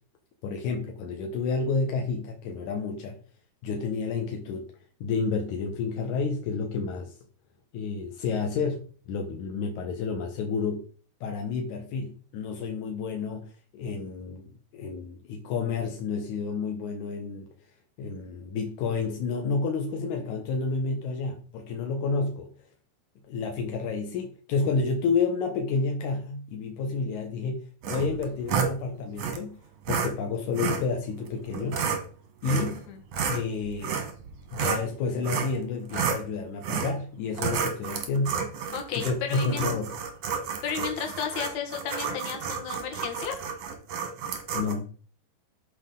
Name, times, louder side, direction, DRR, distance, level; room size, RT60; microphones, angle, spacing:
voice 1, 0.4-3.2 3.6-4.7 5.0-7.1 7.7-10.8 11.2-17.5 18.0-22.5 23.3-29.6 29.9-31.8 32.4-32.8 33.3-34.0 34.5-38.4 39.0-39.9 44.5-44.9, left 4 dB, 75° left, 1.8 m, -30 dB
sound 1, 27.8-28.7 29.2-29.4 29.9-30.1 30.6-30.8 31.5-32.0 32.4-32.8 33.1-34.9 35.2-35.6 35.9-36.2 36.6-37.0 37.3-44.7, right 6 dB, 70° right, 1.6 m, -30 dB
voice 2, 32.7-33.0 38.7-39.7 40.6-43.4, left 7 dB, 60° left, 2.1 m, -33 dB
13.5 x 4.9 x 3.8 m
omnidirectional pair, 5.1 m